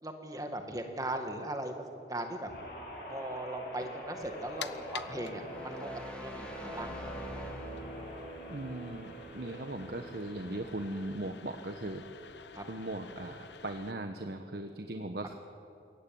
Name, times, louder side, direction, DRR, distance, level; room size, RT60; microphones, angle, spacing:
voice 1, 0.0-1.7 2.1-2.5 3.1-7.1 12.5-12.6, right 1 dB, 20° right, 5 dB, 2.0 m, -39 dB
Guitar, 2.5-11.0 11.4-11.8, equal, 55° left, 7.7 m, -45 dB
sound 1, 4.2-13.9, left 7 dB, 85° left, 0.9 m, -50 dB
sound 2, 5.5-8.3, equal, 5° left, 3.3 m, -43 dB
voice 2, 8.5-12.0 12.7-15.3, right 1 dB, 65° right, 5 dB, 1.2 m, -39 dB
22.0 x 17.5 x 9.5 m, 2.7 s
head